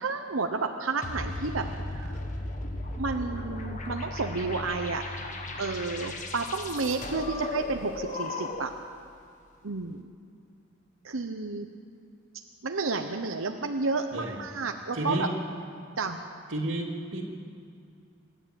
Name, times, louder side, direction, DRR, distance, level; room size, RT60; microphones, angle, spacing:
voice 1, 0.0-1.7 1.9-2.2 3.0-5.2 5.6-8.7 9.6-10.1 11.0-11.7 12.6-15.3 16.0-16.2, right 3 dB, 85° right, 4 dB, 1.0 m, -31 dB
sound 1, 1.0-8.8, left 2 dB, 40° left, 1.6 m, -36 dB
voice 2, 14.9-15.3 16.5-17.2, right 1 dB, 70° right, -4 dB, 2.6 m, -31 dB
26.5 x 11.5 x 8.5 m, 2.4 s
head